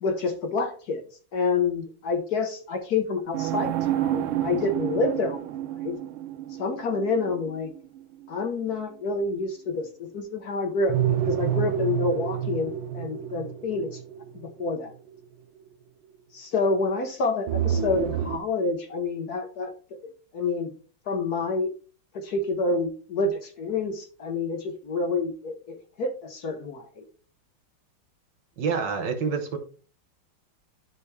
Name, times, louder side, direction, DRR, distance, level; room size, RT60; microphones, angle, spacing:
voice 1, 0.0-1.0 1.3-5.5 5.8-5.9 6.6-7.7 8.3-13.9 14.3-14.9 16.3-19.7 20.0-20.7 21.1-21.7 22.1-27.1, left 3 dB, 55° left, 1.3 m, -28 dB
sound 1, 3.3-8.4 10.9-14.9 17.5-18.4, right 10 dB, 85° right, 1.5 m, -29 dB
voice 2, 28.6-29.6, right 5 dB, 60° right, 1.7 m, -27 dB
12.5 x 4.6 x 3.2 m
omnidirectional pair, 2.3 m